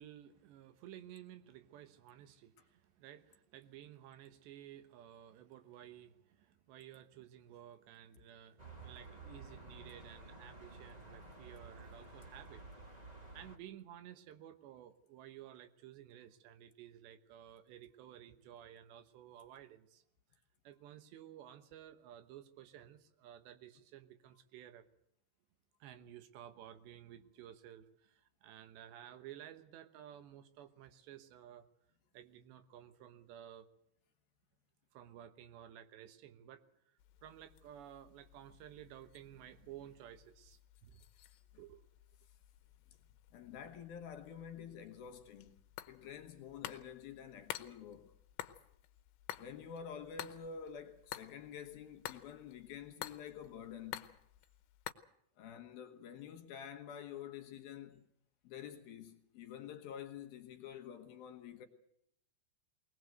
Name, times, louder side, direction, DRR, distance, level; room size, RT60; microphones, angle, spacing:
voice 1, 0.0-12.6 13.3-20.0 20.6-24.8 25.8-31.7 32.1-33.7 34.9-41.0 41.6-42.0, right 11 dB, 75° right, 3.3 m, -54 dB
sound 1, 8.6-13.6, right 3 dB, 15° right, 1.4 m, -53 dB
sound 2, 37.0-54.9, left 14 dB, 90° left, 3.4 m, -52 dB
voice 2, 43.3-45.5 45.9-48.1 49.4-54.1 55.4-58.0 58.4-61.7, left 8 dB, 65° left, 2.8 m, -48 dB
21.5 x 19.0 x 7.9 m
omnidirectional pair, 5.2 m